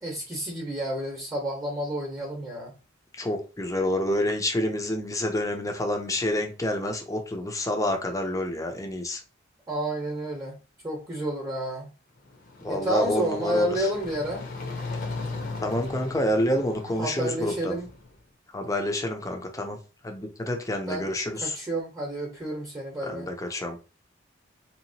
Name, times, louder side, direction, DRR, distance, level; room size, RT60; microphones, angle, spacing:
voice 1, 0.0-2.7 9.7-10.6 10.8-11.9 12.7-14.5 17.0-17.9 20.9-21.1 21.3-23.3, right 1 dB, 15° right, -1 dB, 1.0 m, -30 dB
voice 2, 3.2-9.2 12.6-13.9 15.6-17.8 18.5-19.8 20.0-21.5 23.0-23.8, left 1 dB, 15° left, 3 dB, 0.7 m, -28 dB
sound 1, 12.2-18.2, left 3 dB, 50° left, 0.9 m, -38 dB
4.0 x 2.9 x 2.7 m, 0.32 s
head